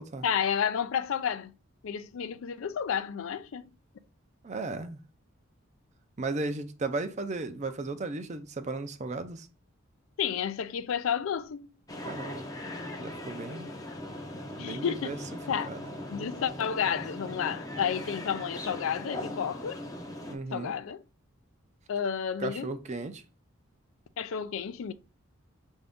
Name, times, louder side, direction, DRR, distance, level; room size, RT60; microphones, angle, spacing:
voice 1, 0.2-1.5 1.8-3.7 10.2-11.7 14.6-15.1 15.5-15.7 16.1-19.8 20.5-21.0 21.9-22.7 24.2-24.9, left 7 dB, 70° left, 0.4 m, -31 dB
voice 2, 4.4-5.0 6.2-9.5 12.1-12.4 13.0-13.7 14.6-15.2 15.6-15.9 20.3-20.7 22.4-23.2, right 3 dB, 35° right, 0.5 m, -35 dB
sound 1, 11.9-20.4, left 1 dB, 15° left, 0.6 m, -39 dB
5.7 x 2.7 x 3.5 m
head